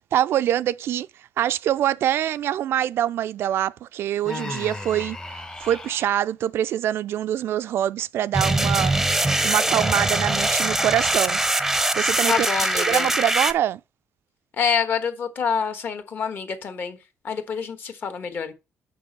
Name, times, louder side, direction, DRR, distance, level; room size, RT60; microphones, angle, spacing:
voice 1, 0.1-1.1 1.4-5.2 5.6-11.4 12.0-12.5 12.7-13.8, right 11 dB, 65° right, 0.3 m, -24 dB
Human voice, 4.2-6.1, left 2 dB, 15° left, 0.9 m, -35 dB
sound 1, 8.3-13.5, right 1 dB, 5° right, 0.6 m, -22 dB
voice 2, 12.3-13.1 14.6-17.0 17.2-18.5, left 6 dB, 45° left, 1.3 m, -26 dB
6.1 x 5.9 x 5.2 m
cardioid pair, 135°, 5 cm